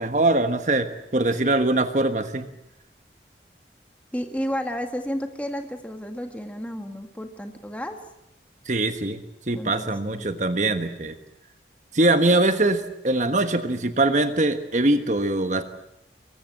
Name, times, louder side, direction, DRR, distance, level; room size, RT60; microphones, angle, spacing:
voice 1, 0.0-2.5 8.7-9.2 9.5-11.1 11.9-15.6, right 2 dB, 45° right, 8 dB, 1.3 m, -22 dB
voice 2, 4.1-8.0 9.5-10.3, equal, 10° left, 5 dB, 1.9 m, -32 dB
25.0 x 23.0 x 7.7 m, 0.83 s
head